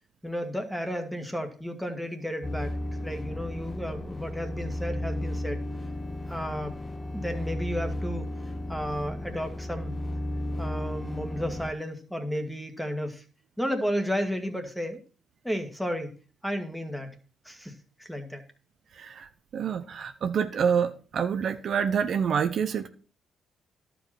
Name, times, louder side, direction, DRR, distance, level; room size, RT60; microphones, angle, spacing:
voice 1, 0.2-2.8 3.0-5.6 6.3-8.3 8.7-9.9 10.6-13.2 13.6-15.0 15.4-16.1 16.4-17.2 17.5-18.4, equal, ahead, 1.7 m, -33 dB
sound 1, 2.4-11.7, left 1 dB, 20° left, 0.8 m, -34 dB
voice 2, 19.0-22.9, right 7 dB, 60° right, 0.8 m, -27 dB
11.5 x 5.1 x 5.9 m
cardioid pair, 90°, 0 cm